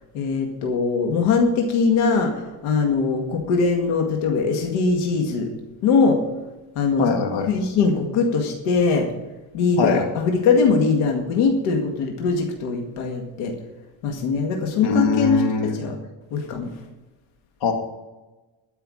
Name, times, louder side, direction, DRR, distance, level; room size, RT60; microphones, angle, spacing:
voice 1, 0.1-5.5 5.8-6.2 6.8-7.1 7.5-9.1 9.5-13.5 14.0-15.4 15.8-16.0 16.3-16.7, left 4 dB, 85° left, 2 dB, 2.1 m, -21 dB
voice 2, 7.0-7.5 9.8-10.0 14.8-15.8 17.6-17.7, left 5 dB, 65° left, 3 dB, 2.3 m, -22 dB
13.0 x 5.8 x 9.0 m, 1.1 s
cardioid pair, 140°, 48 cm